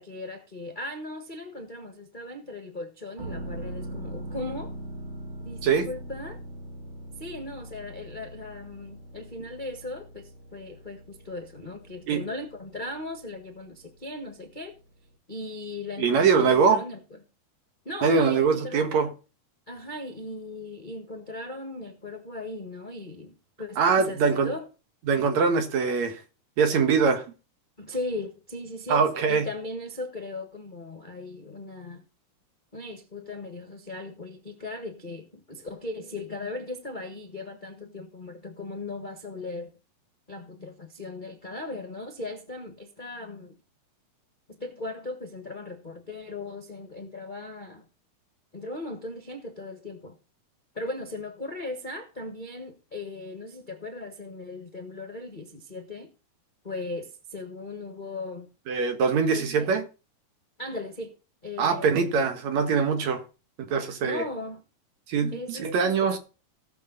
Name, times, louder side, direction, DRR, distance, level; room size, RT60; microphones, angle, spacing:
voice 1, 0.0-4.7 5.4-6.4 7.2-14.7 15.3-17.2 17.8-19.0 19.7-24.7 27.8-32.0 32.7-39.7 40.3-43.6 44.5-47.8 48.5-50.2 50.7-56.1 56.6-58.5 59.3-59.8 60.6-61.1 61.4-62.1 63.8-64.6 65.3-66.2, left 2 dB, 35° left, 0.7 m, -38 dB
sound 1, 3.2-14.7 15.0-15.1, right 1 dB, 25° right, 1.7 m, -41 dB
voice 2, 16.0-16.8 18.0-19.1 23.8-24.5 25.1-26.2 26.6-27.2 28.9-29.5 58.7-59.8 61.6-63.2 63.6-64.2 65.1-66.2, right 5 dB, 65° right, 2.7 m, -23 dB
18.0 x 7.0 x 4.0 m
omnidirectional pair, 3.7 m